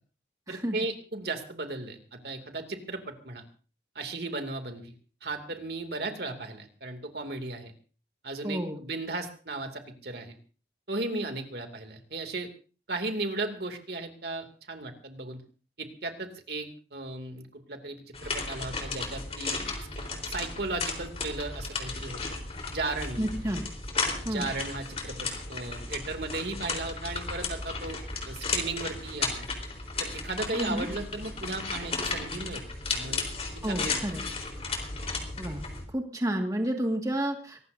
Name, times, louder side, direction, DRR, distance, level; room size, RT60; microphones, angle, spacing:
voice 1, 0.5-3.4 3.9-4.9 5.2-7.7 8.2-10.3 10.9-12.5 12.9-15.4 15.8-22.2 22.7-23.3 24.2-28.0 28.2-29.5 30.0-32.6 32.9-33.3 33.7-34.0, right 2 dB, 60° right, 5 dB, 2.5 m, -36 dB
voice 2, 8.4-8.8 23.2-23.7 24.2-24.5 30.5-30.9 33.6-34.2 35.4-37.6, right 1 dB, 20° right, 3 dB, 1.9 m, -31 dB
sound 1, 18.1-35.8, left 4 dB, 35° left, 3.8 m, -34 dB
23.5 x 19.0 x 2.7 m, 0.37 s
head